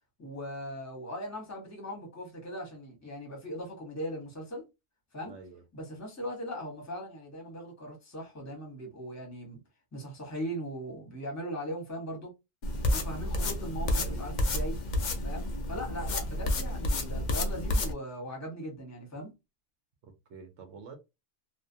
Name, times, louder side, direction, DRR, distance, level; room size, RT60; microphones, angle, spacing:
voice 1, 0.2-4.6 5.1-5.4 5.7-9.6 9.9-12.3 12.9-14.8 15.2-19.3, equal, 15° left, 0.8 m, -39 dB
voice 2, 5.2-5.6 14.0-14.2 20.0-21.0, right 5 dB, 65° right, 0.9 m, -48 dB
sound 1, 12.6-17.9, left 1 dB, 70° left, 0.4 m, -30 dB
2.4 x 2.1 x 2.6 m
omnidirectional pair, 1.3 m